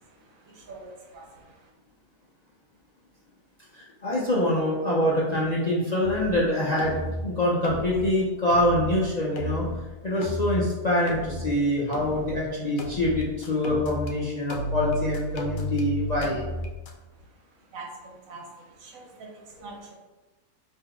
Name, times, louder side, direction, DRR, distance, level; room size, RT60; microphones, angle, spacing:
voice 1, 0.0-1.7 17.2-19.9, right 3 dB, 70° right, -2 dB, 1.3 m, -45 dB
voice 2, 3.7-9.6 10.0-16.5, left 1 dB, 45° left, -6 dB, 0.5 m, -25 dB
sound 1, 6.0-6.4 6.8-7.3 7.6-8.1 8.5-9.0 9.4-9.8 10.2-10.7 11.1-11.5 11.9-12.4 12.8-14.1 14.5-16.9, equal, 85° left, 1.1 m, -33 dB
3.9 x 2.9 x 4.3 m, 1.1 s
omnidirectional pair, 1.5 m